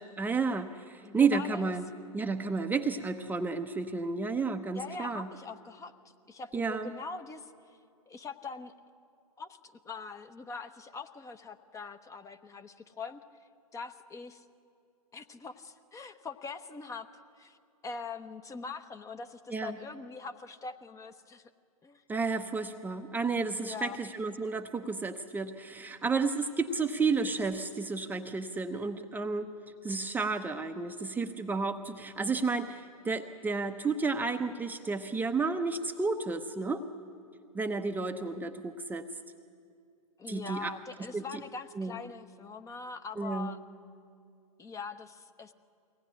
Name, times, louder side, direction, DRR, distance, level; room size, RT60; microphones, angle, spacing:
voice 1, 0.0-1.9 2.1-5.3 6.5-6.9 19.5-19.7 22.1-29.5 29.8-36.8 37.5-39.1 40.3-40.7 41.1-41.2 41.7-42.0 43.2-43.5, right 4 dB, 10° right, 6 dB, 0.8 m, -31 dB
voice 2, 1.0-1.7 4.7-5.9 6.3-7.5 8.1-8.7 9.4-13.2 13.7-14.4 15.1-17.6 17.8-21.5 21.8-22.0 23.6-24.0 40.2-43.6 44.6-45.5, left 4 dB, 15° left, 9 dB, 0.9 m, -42 dB
22.5 x 18.0 x 10.0 m, 2.4 s
hypercardioid pair, 110°, 19 cm